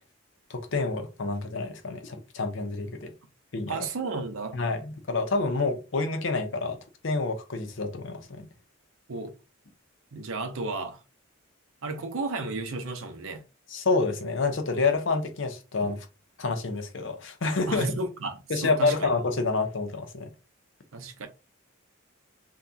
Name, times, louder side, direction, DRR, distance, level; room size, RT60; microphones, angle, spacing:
voice 1, 0.5-3.1 3.5-3.9 4.5-6.8 7.0-8.5 13.7-16.1 16.4-18.0 18.5-20.3, left 3 dB, 60° left, 0.6 m, -28 dB
voice 2, 3.7-4.6 9.1-9.3 10.1-11.0 11.8-13.4 17.7-19.1 20.9-21.3, right 3 dB, 75° right, 0.6 m, -33 dB
3.6 x 2.2 x 2.7 m
head